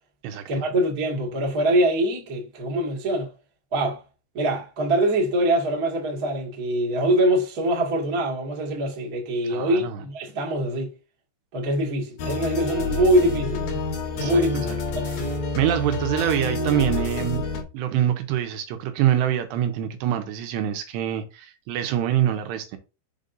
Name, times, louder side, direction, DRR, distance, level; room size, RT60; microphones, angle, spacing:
voice 1, 0.5-3.3 3.7-4.0 4.3-10.9 11.5-13.6 14.2-14.6 14.9-15.0, right 1 dB, 40° right, 1.3 m, -23 dB
voice 2, 9.5-10.0 14.2-14.8 15.6-17.4 17.7-22.8, right 11 dB, 85° right, 3.1 m, -25 dB
sound 1, 12.2-17.6, left 3 dB, 65° left, 2.9 m, -28 dB
7.3 x 5.3 x 2.6 m
omnidirectional pair, 4.8 m